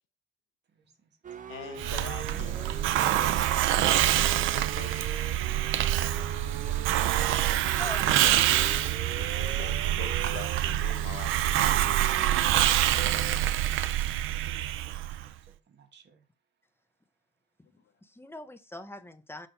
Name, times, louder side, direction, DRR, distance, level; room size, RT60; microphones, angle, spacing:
voice 1, 0.7-1.2 14.3-14.9 15.2-16.3, right 6 dB, 60° right, 1.7 m, -58 dB
sound 1, 1.2-13.4, right 7 dB, 40° right, 0.7 m, -42 dB
voice 2, 1.5-3.5 3.7-4.1 4.5-5.6 6.1-7.1 7.8-7.9 8.3-8.6 9.2-12.2 18.2-18.3, left 10 dB, 85° left, 1.1 m, -46 dB
Hiss, 1.8-15.3, right 13 dB, 80° right, 0.5 m, -26 dB
voice 3, 7.8-8.1 13.3-13.4 18.0-19.5, left 2 dB, 10° left, 0.9 m, -42 dB
6.0 x 3.8 x 5.5 m
cardioid pair, 90°, 20 cm